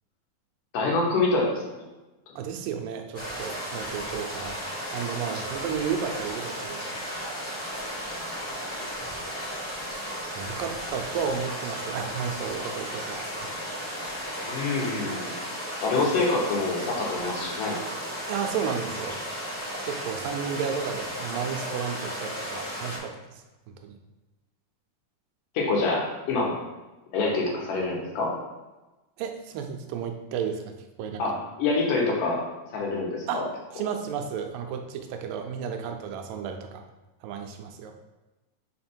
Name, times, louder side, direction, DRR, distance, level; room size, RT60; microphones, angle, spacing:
voice 1, 0.7-1.5 14.4-15.4 15.8-17.8 25.5-26.6 27.1-28.3 31.2-32.4 32.7-33.4, left 3 dB, 75° left, -2 dB, 2.8 m, -26 dB
voice 2, 2.4-4.6 4.9-6.9 8.8-8.9 10.3-13.5 18.3-19.2 19.8-23.2 23.8-24.0 29.2-30.6 31.0-31.3 33.3-33.5 33.7-36.8 37.2-38.0, right 7 dB, 90° right, 5 dB, 2.4 m, -32 dB
sound 1, 3.1-23.0, equal, 25° left, 1.5 m, -34 dB
5.5 x 4.2 x 4.4 m, 1.1 s
omnidirectional pair, 3.9 m